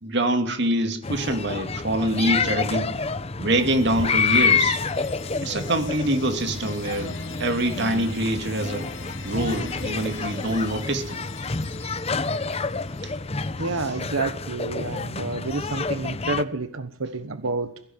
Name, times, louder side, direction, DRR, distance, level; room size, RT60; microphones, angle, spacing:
voice 1, 0.0-3.0 3.4-4.8 5.4-8.9 9.2-11.2 13.0-13.1, right 1 dB, 55° right, 2.6 m, -25 dB
sound 1, 1.0-16.4, left 4 dB, 30° left, 0.8 m, -28 dB
sound 2, 3.5-13.4, left 4 dB, 60° left, 2.4 m, -41 dB
voice 2, 13.6-17.8, right 3 dB, 90° right, 1.2 m, -29 dB
22.5 x 16.0 x 9.5 m
head